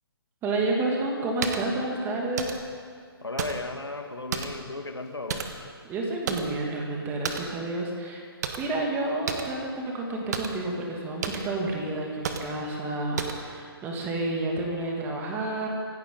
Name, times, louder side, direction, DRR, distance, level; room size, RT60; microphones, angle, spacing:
voice 1, 0.4-2.6 5.8-8.3 8.6-15.7, right 2 dB, 15° right, -1 dB, 2.4 m, -30 dB
sound 1, 1.4-1.7 2.4-2.7 3.4-3.7 4.3-4.7 5.3-5.7 6.3-6.6 7.2-7.5 8.4-8.8 9.3-9.5 10.3-10.6 11.2-11.5 12.2-12.6 13.2-13.5, right 6 dB, 45° right, 1.5 m, -32 dB
voice 2, 3.2-5.5, left 2 dB, 90° left, 6 dB, 1.7 m, -35 dB
26.0 x 11.5 x 4.0 m, 2.2 s
figure-of-eight pair, 140°, 13 cm